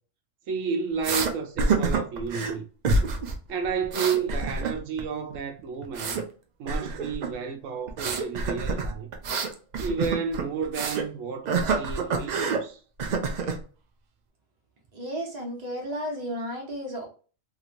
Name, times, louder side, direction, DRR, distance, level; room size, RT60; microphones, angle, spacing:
voice 1, 0.5-2.6 3.5-6.2 6.6-9.1 9.8-12.8, right 6 dB, 85° right, 1.0 m, -31 dB
sound 1, 1.0-1.3 1.6-2.5 2.8-3.4 3.6-5.0 5.3-6.2 6.7-7.3 7.9-11.1 11.5-12.6 13.0-13.6, right 4 dB, 65° right, 0.4 m, -27 dB
voice 2, 14.9-17.1, equal, 35° right, 1.0 m, -33 dB
2.9 x 2.9 x 2.4 m
omnidirectional pair, 1.3 m